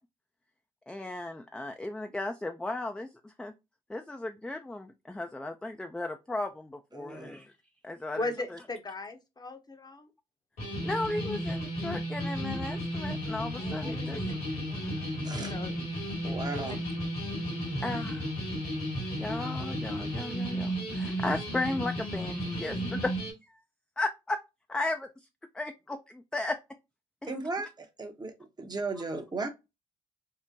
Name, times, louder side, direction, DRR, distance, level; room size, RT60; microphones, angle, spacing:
voice 1, 0.9-3.5 3.9-7.5 7.8-8.6 10.8-14.2 16.5-16.6 17.8-18.3 19.2-23.1 24.0-24.4 24.7-25.1 25.5-26.6 27.2-27.4, left 2 dB, 5° left, 0.4 m, -35 dB
voice 2, 6.9-7.4 15.2-15.5 16.2-16.8 27.3-28.3 28.6-29.5, right 3 dB, 25° right, 0.8 m, -36 dB
voice 3, 8.1-10.1 13.6-15.1 15.5-15.7 16.5-16.8, left 2 dB, 25° left, 0.7 m, -39 dB
sound 1, 10.6-23.3, equal, 85° left, 1.9 m, -33 dB
3.8 x 2.1 x 2.7 m
hypercardioid pair, 55°, 16 cm